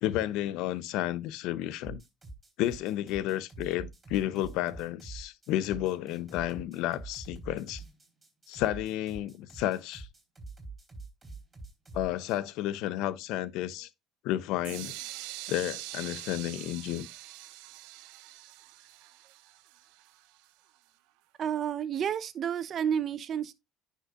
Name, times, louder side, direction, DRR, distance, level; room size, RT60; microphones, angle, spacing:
voice 1, 0.0-2.0 2.6-7.8 8.5-10.1 11.9-13.9 14.2-14.9 15.5-17.1, left 13 dB, 75° left, 0.6 m, -31 dB
sound 1, 1.8-12.5, right 3 dB, 25° right, 3.6 m, -45 dB
sound 2, 14.6-20.5, right 16 dB, 85° right, 0.7 m, -44 dB
voice 2, 21.4-23.5, right 8 dB, 50° right, 0.7 m, -30 dB
9.7 x 5.5 x 2.4 m
supercardioid pair, 90°, 0 cm